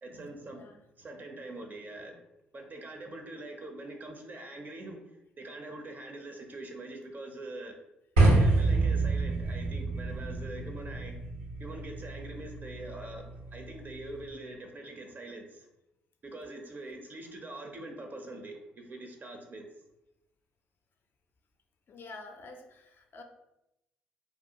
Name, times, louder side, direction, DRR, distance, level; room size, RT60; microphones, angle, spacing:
voice 1, 0.0-0.6 1.0-2.2 2.5-7.8 8.3-11.2 11.6-15.7 16.2-19.7, right 2 dB, 40° right, 3 dB, 0.5 m, -44 dB
sound 1, 8.2-14.3, right 2 dB, 85° right, 0.6 m, -28 dB
voice 2, 21.9-23.2, left 3 dB, 45° left, 4 dB, 0.4 m, -48 dB
2.5 x 2.2 x 2.7 m, 0.89 s
hypercardioid pair, 50°, 5 cm